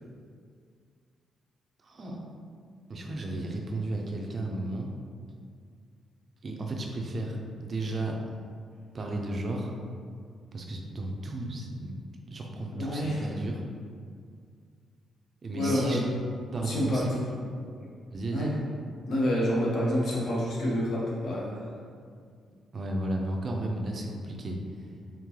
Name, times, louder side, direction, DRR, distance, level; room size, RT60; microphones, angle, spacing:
voice 1, 1.8-2.2 2.9-4.9 6.4-8.2 8.9-9.7 10.5-11.9 12.3-13.6 15.4-16.0 16.5-17.1 18.1-18.6 22.7-24.6, right 2 dB, 35° right, 1 dB, 0.4 m, -33 dB
voice 2, 12.8-13.2 15.5-16.0 16.6-17.2 18.3-18.5 19.1-21.7, equal, 55° left, -5 dB, 1.0 m, -28 dB
3.7 x 3.5 x 3.1 m, 2.2 s
cardioid pair, 165°, 0 cm